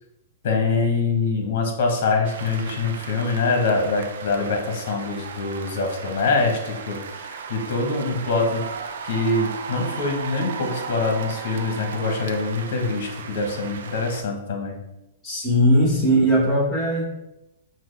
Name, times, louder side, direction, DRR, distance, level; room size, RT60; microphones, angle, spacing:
voice 1, 0.4-8.6 9.0-14.8, left 3 dB, 55° left, 3 dB, 0.9 m, -24 dB
sound 1, 2.2-14.2, right 5 dB, 75° right, 0.4 m, -36 dB
voice 2, 15.2-17.0, equal, 10° left, -10 dB, 1.0 m, -19 dB
5.8 x 2.1 x 3.2 m, 0.93 s
hypercardioid pair, 155°, 0 cm